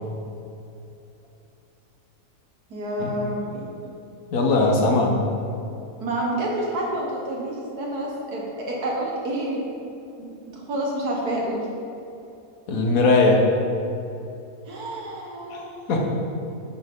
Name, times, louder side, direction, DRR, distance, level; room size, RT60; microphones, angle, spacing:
voice 1, 2.7-3.6 6.0-9.6 10.2-11.7 14.7-15.7, right 1 dB, 85° right, -2 dB, 2.0 m, -28 dB
voice 2, 4.3-5.2 12.7-13.5 15.5-15.6 15.9-16.1, left 2 dB, 65° left, 0 dB, 1.6 m, -19 dB
9.9 x 6.6 x 3.7 m, 2.7 s
omnidirectional pair, 1.6 m